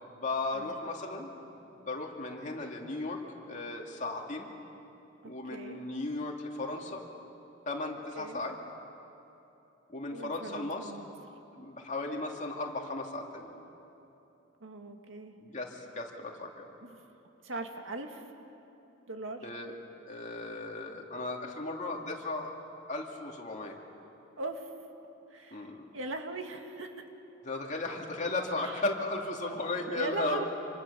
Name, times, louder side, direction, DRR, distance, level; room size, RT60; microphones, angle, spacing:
voice 1, 0.1-3.2 3.5-4.5 5.2-7.0 7.7-8.6 9.9-10.9 11.5-13.5 15.4-16.7 19.4-19.7 20.1-22.5 22.9-23.8 25.5-25.9 27.4-30.5, left 2 dB, 40° left, 1 dB, 2.6 m, -36 dB
voice 2, 5.2-5.8 8.1-8.4 10.1-11.1 14.6-15.4 16.8-17.0 17.4-18.3 19.1-19.5 24.4-24.7 25.3-26.9 28.6-28.8 29.9-30.5, right 2 dB, 85° right, 4 dB, 2.1 m, -40 dB
27.0 x 27.0 x 7.0 m, 2.9 s
head